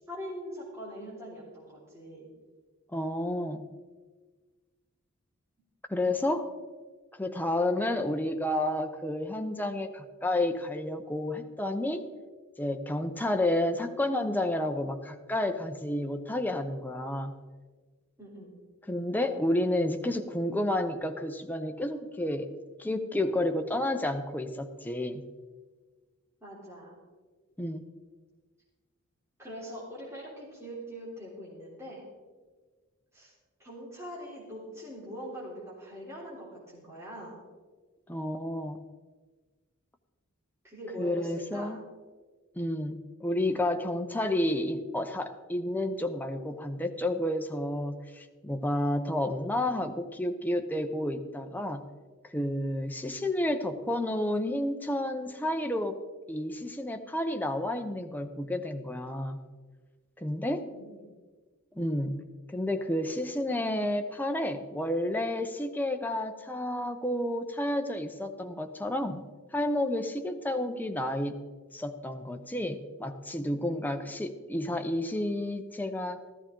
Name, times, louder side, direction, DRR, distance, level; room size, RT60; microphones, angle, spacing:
voice 1, 0.1-2.3 7.8-8.1 18.2-18.5 26.4-27.0 29.4-32.0 33.1-33.3 33.6-37.4 40.6-41.7 60.6-61.1, equal, 15° right, -7 dB, 3.4 m, -42 dB
voice 2, 2.9-3.6 5.9-6.5 7.1-12.1 12.6-17.3 18.9-22.5 22.8-25.2 27.6-27.8 38.1-38.8 41.0-41.8 42.6-51.8 52.3-56.0 56.3-59.4 60.2-60.7 61.8-62.2 62.5-69.2 69.5-71.4 71.7-76.3, left 1 dB, 10° left, 6 dB, 0.7 m, -30 dB
13.5 x 13.5 x 3.8 m, 1.4 s
head